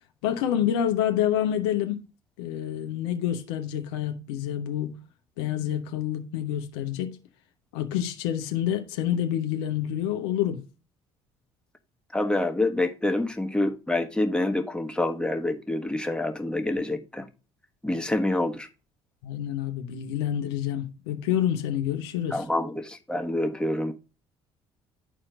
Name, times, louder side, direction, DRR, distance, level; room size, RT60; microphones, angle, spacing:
voice 1, 0.2-2.0 2.4-4.9 5.4-7.2 7.7-10.6 19.2-22.4, left 10 dB, 75° left, 0.8 m, -28 dB
voice 2, 12.1-17.3 17.8-18.7 22.3-23.9, left 2 dB, 5° left, 1.3 m, -27 dB
12.0 x 4.3 x 2.4 m
hypercardioid pair, 55°, 14 cm